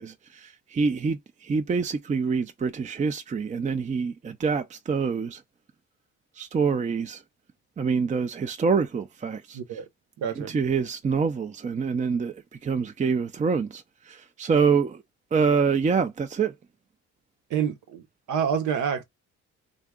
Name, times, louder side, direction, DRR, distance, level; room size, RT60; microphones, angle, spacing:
voice 1, 0.0-5.4 6.4-7.2 7.8-9.6 10.4-15.0 15.3-16.5, right 5 dB, 25° right, 0.4 m, -26 dB
voice 2, 9.5-9.9 10.2-10.5 17.5-19.0, right 8 dB, 75° right, 1.0 m, -28 dB
3.6 x 2.2 x 3.6 m
cardioid pair, 90°, 30 cm